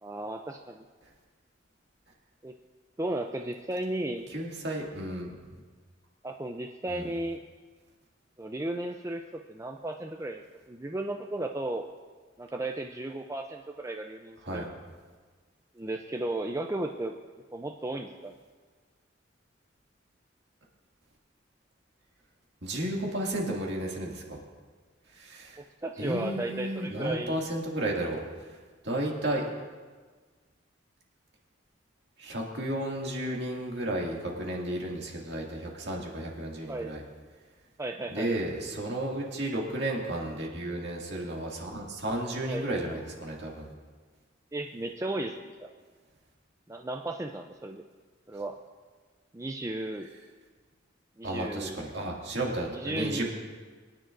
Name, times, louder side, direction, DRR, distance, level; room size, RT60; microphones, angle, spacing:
voice 1, 0.0-0.9 2.4-2.5 3.0-4.3 6.2-7.4 8.4-9.2 9.5-10.4 10.7-11.9 12.4-14.7 15.8-17.2 17.5-18.4 25.6-27.4 36.7-36.9 37.8-38.3 42.5-42.7 44.5-45.7 46.7-47.8 48.3-48.6 49.3-50.1 51.2-51.9 52.7-53.2, right 1 dB, 15° right, 3 dB, 0.4 m, -34 dB
voice 2, 4.3-5.3 6.9-7.1 14.4-14.7 22.6-24.4 25.1-25.6 26.0-28.2 28.8-29.5 32.2-37.0 38.1-43.7 51.2-53.4, right 1 dB, 60° right, -2 dB, 2.2 m, -33 dB
23.0 x 10.5 x 2.6 m, 1.4 s
head